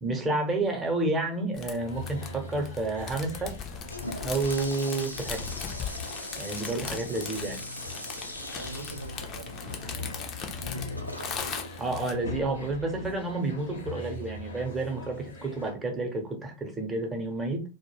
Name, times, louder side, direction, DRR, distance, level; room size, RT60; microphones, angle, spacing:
voice 1, 0.0-3.5 4.2-5.5 6.4-7.6 11.8-17.6, right 2 dB, 15° right, 0.8 m, -30 dB
sound 1, 1.5-12.1, left 6 dB, 30° left, 0.5 m, -39 dB
sound 2, 1.8-15.7, left 3 dB, 70° left, 0.8 m, -42 dB
Toilet flush, 3.7-13.0, equal, 90° left, 0.4 m, -42 dB
voice 2, 8.6-10.3 10.5-11.2, right 2 dB, 80° right, 0.4 m, -44 dB
2.4 x 2.1 x 3.1 m
figure-of-eight pair, 90°, 0 cm